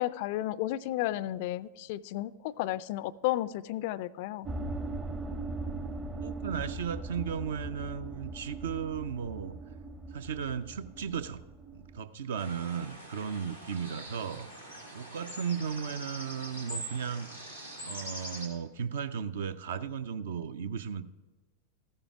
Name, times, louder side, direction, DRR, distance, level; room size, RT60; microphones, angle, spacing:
voice 1, 0.0-4.5, left 15 dB, 50° left, 19 dB, 0.3 m, -33 dB
sound 1, 4.5-12.0, right 2 dB, 15° right, 0.7 m, -39 dB
voice 2, 6.2-9.5 10.1-11.4 11.7-14.5 14.9-17.3 17.8-21.0, right 7 dB, 60° right, 13 dB, 0.5 m, -35 dB
sound 2, 12.4-18.5, right 1 dB, 90° right, 2.0 m, -43 dB
14.0 x 8.9 x 4.7 m, 1.2 s
figure-of-eight pair, 90°, 0 cm